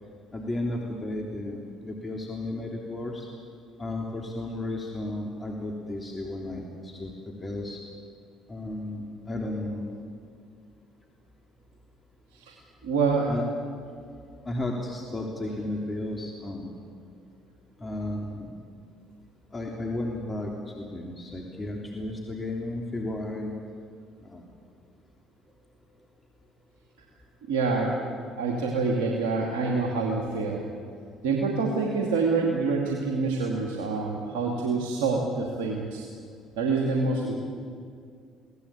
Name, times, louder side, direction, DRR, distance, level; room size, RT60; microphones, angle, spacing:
voice 1, 0.3-3.3 3.8-7.8 8.5-9.9 13.3-13.4 14.4-16.7 17.8-18.5 19.5-23.5 24.2-24.5, left 1 dB, 25° left, 0 dB, 3.4 m, -33 dB
voice 2, 12.8-13.3 27.5-28.0 28.4-30.6 31.2-36.1 36.6-37.4, right 4 dB, 85° right, 0 dB, 2.6 m, -26 dB
23.5 x 17.5 x 8.7 m, 2.2 s
hypercardioid pair, 65°, 0 cm